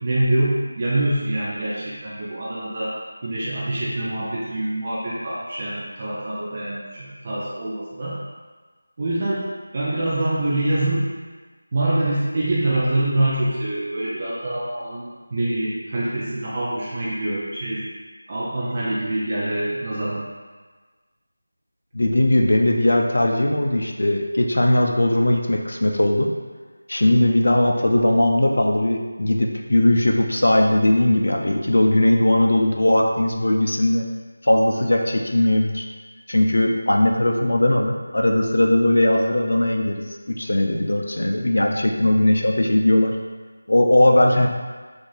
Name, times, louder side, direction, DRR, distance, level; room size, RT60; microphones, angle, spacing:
voice 1, 0.0-2.9 3.2-8.2 9.0-9.4 9.7-11.1 11.7-17.8 18.3-20.2, right 1 dB, 35° right, -8 dB, 0.5 m, -25 dB
voice 2, 21.9-26.3 26.9-34.0 34.4-35.8 36.3-43.2 43.7-44.5, left 1 dB, 70° left, 1 dB, 0.5 m, -19 dB
2.9 x 2.5 x 4.0 m, 1.4 s
figure-of-eight pair, 170°, 0 cm